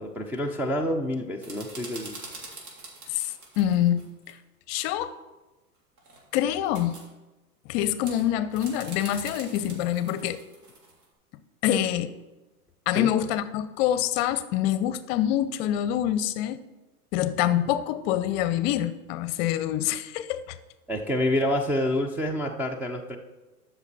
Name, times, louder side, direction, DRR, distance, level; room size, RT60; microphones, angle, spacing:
voice 1, 0.0-2.3 12.9-13.1 20.9-23.2, left 1 dB, 5° right, -3 dB, 0.4 m, -28 dB
sound 1, 1.4-4.3 6.0-7.0 8.0-11.1, right 3 dB, 70° right, 3.4 m, -44 dB
voice 2, 3.1-4.4 4.7-5.1 6.3-7.0 7.7-10.4 11.6-12.1 12.9-16.6 17.1-20.6, left 11 dB, 40° left, 13 dB, 0.7 m, -26 dB
13.0 x 6.1 x 4.1 m, 1.1 s
hypercardioid pair, 105°, 46 cm